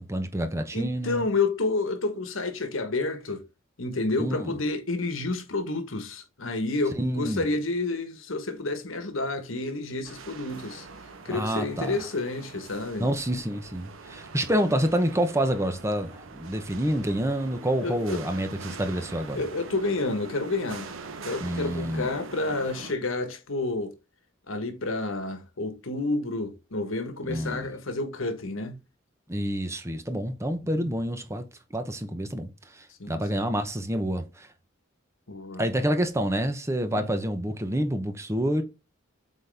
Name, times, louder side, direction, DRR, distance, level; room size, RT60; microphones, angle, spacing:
voice 1, 0.0-1.3 4.2-4.5 7.0-7.5 11.3-12.0 13.0-19.4 21.4-22.1 27.3-27.6 29.3-31.4 31.7-32.5 32.7-34.5 35.6-38.6, right 1 dB, 15° right, 0.9 m, -28 dB
voice 2, 0.7-3.5 3.8-10.9 11.2-13.1 17.8-18.2 19.3-20.9 21.2-23.9 24.5-28.8 30.6-30.9 33.0-33.4 35.3-35.7 36.9-37.1, left 2 dB, 75° left, 1.3 m, -30 dB
sound 1, 10.0-22.9, right 3 dB, 80° right, 1.0 m, -43 dB
8.1 x 4.1 x 3.4 m
head